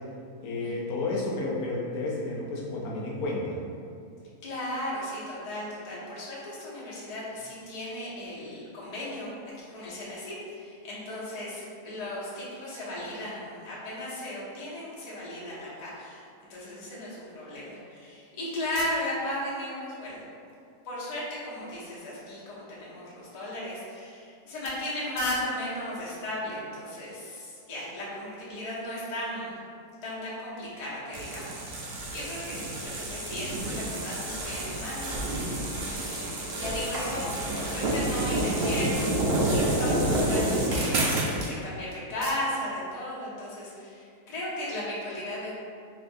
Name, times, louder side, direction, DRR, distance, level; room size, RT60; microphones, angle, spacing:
voice 1, 0.4-3.6, left 2 dB, 80° left, -3 dB, 1.1 m, -31 dB
voice 2, 4.4-9.3 9.6-20.2 20.8-29.6 30.0-31.4 31.7-39.1 39.4-41.1 41.5-45.5, left 1 dB, 40° left, -8 dB, 0.6 m, -36 dB
sound 1, 31.1-41.5, right 1 dB, 60° right, 0.7 m, -29 dB
3.4 x 2.6 x 2.5 m, 2.4 s
omnidirectional pair, 1.6 m